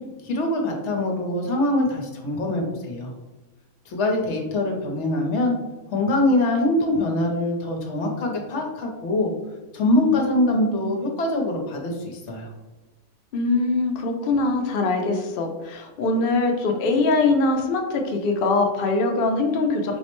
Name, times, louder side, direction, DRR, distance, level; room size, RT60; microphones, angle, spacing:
voice 1, 0.2-3.1 3.9-5.5 5.9-9.3 9.7-12.5, left 1 dB, 60° left, 1 dB, 0.9 m, -23 dB
voice 2, 13.3-20.0, left 3 dB, 80° left, 3 dB, 0.5 m, -22 dB
4.4 x 2.1 x 2.9 m, 1.1 s
omnidirectional pair, 1.5 m